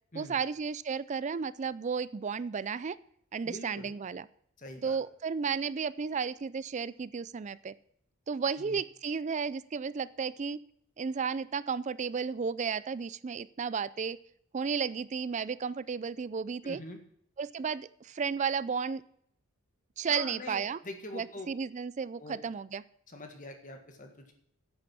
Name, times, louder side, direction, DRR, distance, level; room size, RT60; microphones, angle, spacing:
voice 1, 0.1-3.0 3.3-4.2 4.8-7.7 8.3-10.6 11.0-14.2 14.5-16.8 17.4-19.0 20.0-20.8 21.1-22.8, right 6 dB, 35° right, 18 dB, 0.4 m, -33 dB
voice 2, 3.4-3.9 4.6-5.0 8.5-8.8 16.6-17.0 20.1-21.5 22.2-22.4 23.1-24.3, left 1 dB, 35° left, 4 dB, 1.7 m, -44 dB
10.0 x 8.8 x 6.2 m, 0.68 s
head